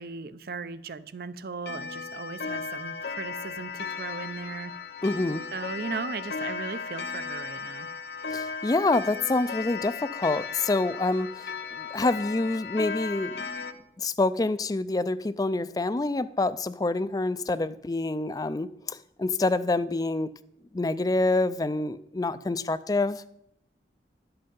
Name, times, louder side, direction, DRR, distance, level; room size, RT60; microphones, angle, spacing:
voice 1, 0.0-4.7 5.5-7.9, right 4 dB, 55° right, 0.6 m, -37 dB
Clock, 1.6-13.7, left 5 dB, 65° left, 0.8 m, -36 dB
voice 2, 5.0-5.4 8.3-13.3 14.0-20.3 20.7-23.2, left 2 dB, 20° left, 0.4 m, -27 dB
11.5 x 7.8 x 5.3 m
head